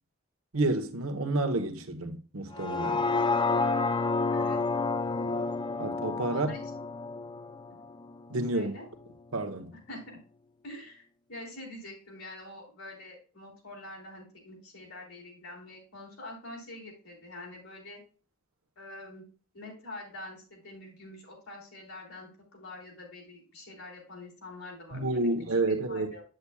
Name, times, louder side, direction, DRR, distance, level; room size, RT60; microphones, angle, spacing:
voice 1, 0.5-3.0 5.8-6.5 8.3-8.7 9.3-9.7 24.9-26.1, right 2 dB, 80° right, 1.1 m, -29 dB
sound 1, 2.5-8.7 9.1-9.2, left 3 dB, 20° left, 0.4 m, -30 dB
voice 2, 6.3-6.7 8.5-8.9 9.9-10.2 10.6-11.0 11.3-18.0 18.8-19.3 19.5-25.3 25.7-26.2, left 2 dB, 85° left, 3.7 m, -45 dB
8.4 x 7.8 x 2.3 m
head